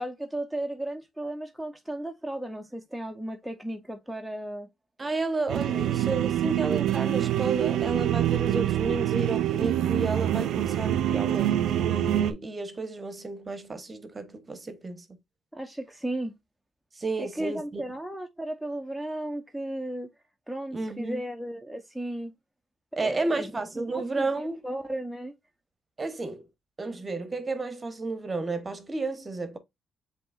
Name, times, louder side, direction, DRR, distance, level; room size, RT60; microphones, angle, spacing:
voice 1, 0.0-4.7 5.7-6.2 6.4-6.5 15.5-16.3 17.2-20.1 20.5-22.3 23.0-25.3, right 1 dB, ahead, 0.6 m, -35 dB
voice 2, 5.0-15.0 17.0-17.9 20.7-21.2 23.0-24.6 26.0-26.4 26.8-29.6, right 3 dB, 25° right, 0.9 m, -32 dB
sound 1, 5.5-12.3, right 12 dB, 75° right, 0.4 m, -25 dB
7.5 x 2.8 x 2.3 m
cardioid pair, 90°, 0 cm